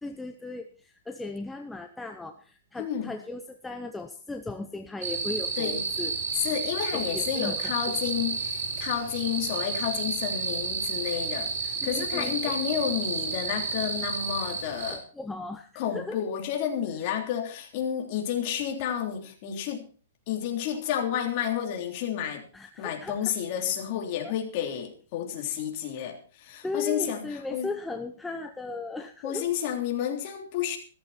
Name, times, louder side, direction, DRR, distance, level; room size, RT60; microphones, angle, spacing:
voice 1, 0.0-6.2 6.9-8.0 11.8-12.4 14.9-16.2 22.5-23.4 24.2-24.3 26.6-29.5, left 3 dB, 5° left, 5 dB, 0.7 m, -37 dB
voice 2, 2.8-3.1 5.6-5.8 6.3-15.0 15.7-19.9 20.3-22.5 22.8-27.7 29.2-30.8, left 9 dB, 35° left, 2 dB, 3.2 m, -31 dB
sound 1, 5.0-15.0, right 5 dB, 50° right, 4.8 m, -31 dB
15.0 x 14.0 x 4.3 m, 0.39 s
hypercardioid pair, 170°, 0 cm